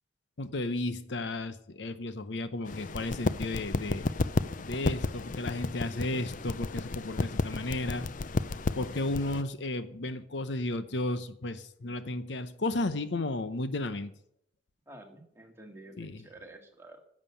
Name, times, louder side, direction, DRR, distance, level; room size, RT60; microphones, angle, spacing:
voice 1, 0.4-4.1 4.6-8.1 8.8-14.1 16.0-16.2, left 2 dB, 70° left, 12 dB, 0.8 m, -33 dB
sound 1, 2.7-9.4, left 3 dB, 45° left, 0.5 m, -33 dB
voice 2, 14.9-17.0, right 1 dB, 15° right, 2 dB, 2.0 m, -50 dB
11.0 x 7.4 x 8.6 m, 0.71 s
head